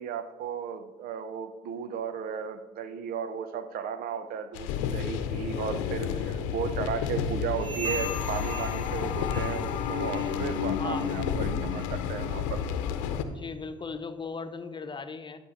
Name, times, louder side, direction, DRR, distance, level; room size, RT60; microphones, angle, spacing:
voice 1, 0.0-12.6, right 7 dB, 65° right, 12 dB, 0.8 m, -35 dB
sound 1, 4.5-13.2, left 7 dB, 80° left, 0.8 m, -30 dB
sound 2, 7.5-9.8 10.0-10.4 10.9-11.1 11.7-11.9 12.6-12.7 13.4-13.5, right 3 dB, 85° right, 2.6 m, -39 dB
voice 2, 10.8-11.2 13.2-15.4, left 4 dB, 30° left, 9 dB, 1.0 m, -38 dB
11.5 x 6.2 x 4.3 m, 1.3 s
hypercardioid pair, 60°, 16 cm